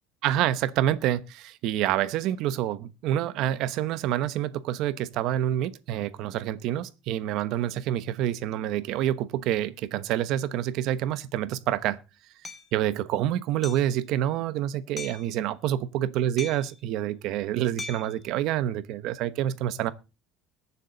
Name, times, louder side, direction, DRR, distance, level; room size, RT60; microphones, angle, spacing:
voice 1, 0.2-12.0 12.7-19.9, right 12 dB, 55° right, 1.0 m, -27 dB
Hammer, 12.4-12.7 13.6-13.9 15.0-15.3 16.4-16.8 17.8-18.2, left 3 dB, 10° left, 1.2 m, -39 dB
21.5 x 7.3 x 4.0 m
cardioid pair, 150°, 0 cm